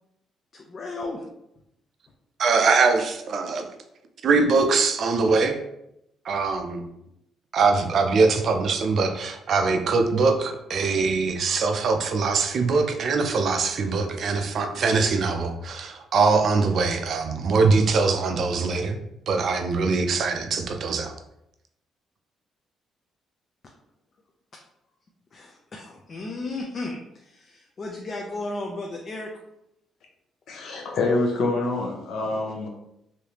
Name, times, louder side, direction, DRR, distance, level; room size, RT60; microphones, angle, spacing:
voice 1, 0.5-1.3 25.3-29.4 30.6-30.7, left 2 dB, 35° left, 0 dB, 0.4 m, -35 dB
voice 2, 2.4-3.7 4.2-5.6 6.2-6.9 7.5-19.0 19.3-21.1, right 4 dB, 50° right, 5 dB, 0.4 m, -22 dB
voice 3, 30.5-32.7, left 2 dB, 65° left, 1 dB, 0.8 m, -26 dB
3.3 x 2.7 x 2.9 m, 0.81 s
cardioid pair, 140°, 0 cm